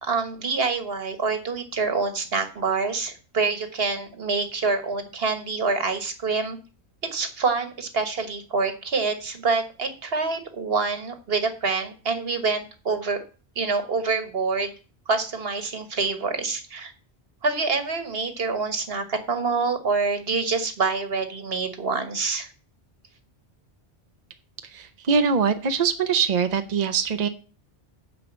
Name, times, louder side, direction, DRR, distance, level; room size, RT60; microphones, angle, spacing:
voice 1, 0.0-6.6 7.0-13.2 13.5-14.7 15.1-16.9 17.4-22.5, right 4 dB, 60° right, 8 dB, 1.6 m, -26 dB
voice 2, 24.6-27.3, right 6 dB, 45° right, 8 dB, 0.7 m, -23 dB
9.2 x 5.0 x 7.3 m, 0.37 s
omnidirectional pair, 1.1 m